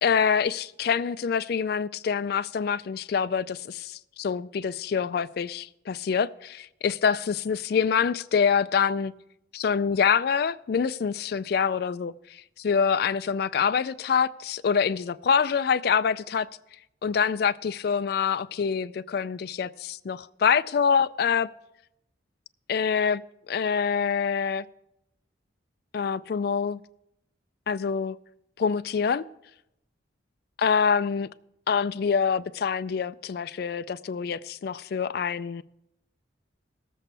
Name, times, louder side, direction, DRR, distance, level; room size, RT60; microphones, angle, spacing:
voice 1, 0.0-9.1 9.5-16.5 17.0-21.5 22.7-23.2 23.5-24.7 25.9-26.8 27.7-28.2 28.6-29.3 30.6-31.3 31.7-35.6, left 6 dB, 50° left, 0.3 m, -25 dB
18.5 x 7.5 x 3.3 m
head